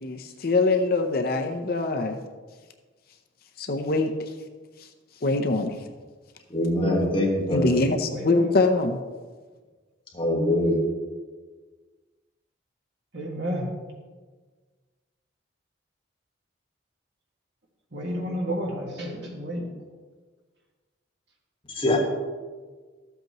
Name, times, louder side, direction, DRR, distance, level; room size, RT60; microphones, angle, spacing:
voice 1, 0.0-2.2 3.6-4.3 4.8-4.9 5.2-5.8 7.5-9.0, left 3 dB, 50° left, 5 dB, 0.6 m, -24 dB
voice 2, 6.5-7.7 10.1-10.9 21.7-22.0, left 1 dB, 25° left, -2 dB, 1.5 m, -23 dB
voice 3, 8.1-8.6 13.1-13.7 17.9-19.7, equal, 55° right, -1 dB, 1.9 m, -31 dB
13.0 x 8.0 x 3.0 m, 1.4 s
head